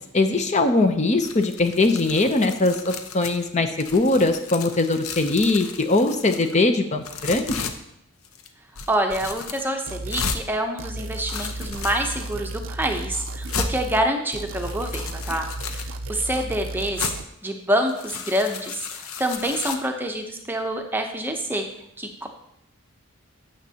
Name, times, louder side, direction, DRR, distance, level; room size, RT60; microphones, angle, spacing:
voice 1, 0.1-7.7, left 2 dB, 30° left, 7 dB, 0.6 m, -21 dB
sound 1, 1.2-3.5 3.8-6.6 7.0-7.8 8.2-8.5 8.8-9.6 10.1-10.4 11.0-12.3 12.9-13.0 13.5-13.7 14.5-15.9 17.0-17.1 17.7-19.8, left 6 dB, 70° left, 0.8 m, -34 dB
voice 2, 8.9-15.8 16.1-17.1 17.4-18.8 19.2-21.7 22.0-22.3, right 1 dB, 10° right, 4 dB, 0.7 m, -26 dB
sound 2, 9.9-10.4 10.8-14.1 14.3-17.3, right 2 dB, 60° right, 0.5 m, -34 dB
12.5 x 7.8 x 2.8 m, 0.78 s
head